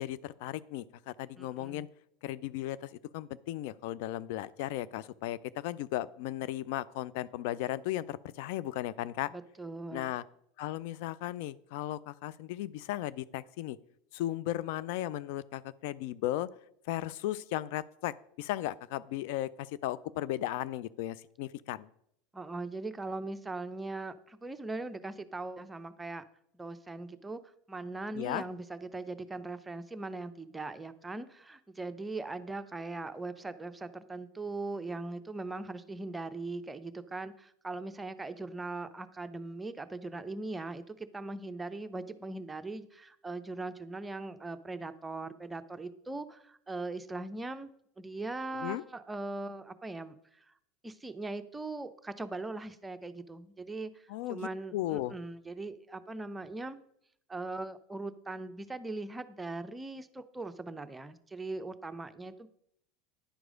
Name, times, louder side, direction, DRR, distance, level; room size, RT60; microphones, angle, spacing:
voice 1, 0.0-1.9 2.2-9.3 9.9-10.2 10.6-13.8 14.1-16.5 16.9-21.9 28.2-28.4 48.5-48.8 54.1-55.1, left 14 dB, 60° left, 17 dB, 0.3 m, -36 dB
voice 2, 1.4-1.9 9.3-10.1 22.3-26.2 26.5-47.7 48.0-50.5 50.8-56.8 57.3-62.5, right 2 dB, 10° right, 10 dB, 0.6 m, -40 dB
10.0 x 4.7 x 5.1 m, 0.72 s
figure-of-eight pair, 80°, 0 cm